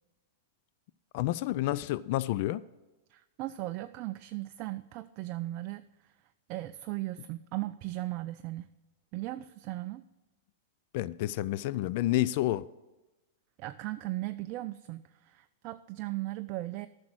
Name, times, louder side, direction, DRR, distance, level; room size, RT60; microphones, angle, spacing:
voice 1, 1.1-2.6 10.9-12.7, left 15 dB, 55° left, 0.3 m, -29 dB
voice 2, 3.1-5.9 6.5-8.7 9.1-10.0 13.6-16.9, right 17 dB, 45° right, 0.3 m, -37 dB
9.5 x 6.2 x 6.3 m
hypercardioid pair, 120°, 0 cm